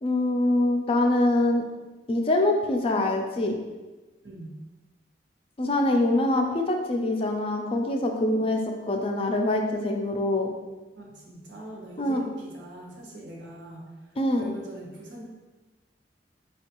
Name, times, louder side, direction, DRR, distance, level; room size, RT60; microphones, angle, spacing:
voice 1, 0.0-1.7 2.1-3.6 5.6-10.5 12.0-12.2 14.2-14.5, left 1 dB, 30° left, 2 dB, 0.4 m, -24 dB
voice 2, 4.2-4.6 11.0-15.2, right 1 dB, 85° right, -2 dB, 0.8 m, -42 dB
4.3 x 2.3 x 2.9 m, 1.2 s
head